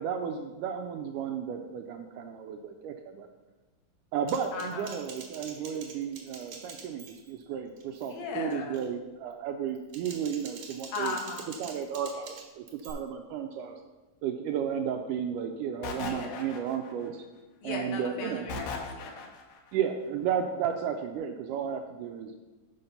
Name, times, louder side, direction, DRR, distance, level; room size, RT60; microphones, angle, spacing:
voice 1, 0.0-3.3 4.1-11.2 11.6-13.8 14.2-17.2 17.6-18.5 19.7-22.4, right 8 dB, 85° right, 4 dB, 1.8 m, -33 dB
Typing, 4.3-7.4 7.8-8.1 8.5-8.9 9.7-12.9, right 5 dB, 65° right, 2.4 m, -46 dB
voice 2, 4.5-4.9 8.1-8.8 10.9-11.6 16.0-16.5 17.6-19.2, left 4 dB, 85° left, 0 dB, 3.0 m, -37 dB
sound 1, 15.8-17.1 18.5-19.6, left 3 dB, 70° left, 1.7 m, -38 dB
7.0 x 5.7 x 5.2 m, 1.2 s
omnidirectional pair, 4.1 m